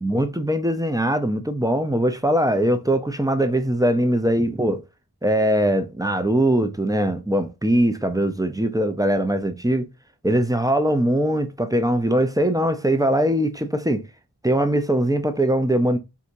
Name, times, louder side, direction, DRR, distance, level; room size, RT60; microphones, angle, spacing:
voice 1, 0.0-4.8 5.2-9.9 10.2-14.0 14.4-16.0, right 1 dB, 10° right, 0.5 m, -21 dB
4.7 x 2.8 x 2.6 m
wide cardioid pair, 60°, 40 cm